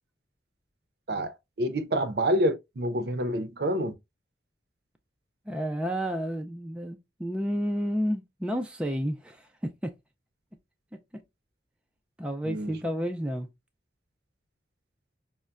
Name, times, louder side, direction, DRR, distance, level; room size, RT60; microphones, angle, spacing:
voice 1, 1.1-3.9 12.4-12.7, equal, 60° right, 0.6 m, -28 dB
voice 2, 5.5-9.5 9.8-9.9 12.2-13.5, equal, 5° right, 0.3 m, -31 dB
5.5 x 2.1 x 2.4 m
head